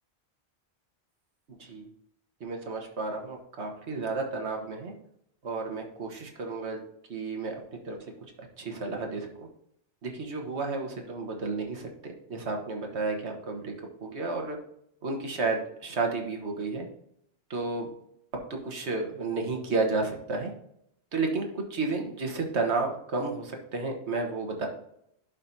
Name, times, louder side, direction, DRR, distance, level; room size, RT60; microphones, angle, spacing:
voice 1, 2.4-4.9 5.4-6.8 7.1-7.5 7.8-8.0 8.6-9.5 10.0-13.7 14.0-14.6 15.0-16.9 17.5-17.9 18.5-20.5 21.1-21.4 21.7-24.7, right 3 dB, 85° right, 2 dB, 1.6 m, -32 dB
11.5 x 5.3 x 2.7 m, 0.73 s
omnidirectional pair, 1.1 m